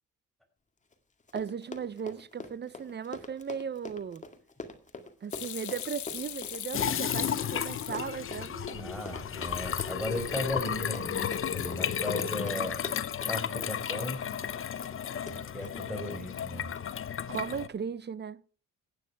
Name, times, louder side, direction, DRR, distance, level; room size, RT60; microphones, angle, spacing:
Run, 0.9-1.0 1.2-16.2 16.8-17.0 17.3-17.4, left 3 dB, 25° left, 2.2 m, -44 dB
voice 1, 1.3-4.2 5.2-9.0 17.3-18.4, right 7 dB, 35° right, 0.8 m, -37 dB
Hands / Sink (filling or washing), 5.3-8.5 8.9-9.6 9.9-10.4 10.7-11.2, left 12 dB, 70° left, 1.3 m, -41 dB
sound 1, 6.7-17.7, left 8 dB, 45° left, 0.8 m, -33 dB
voice 2, 8.8-12.9 13.3-14.3 15.3-16.7, left 1 dB, ahead, 5.1 m, -36 dB
15.5 x 9.8 x 4.7 m
cardioid pair, 90°, 30 cm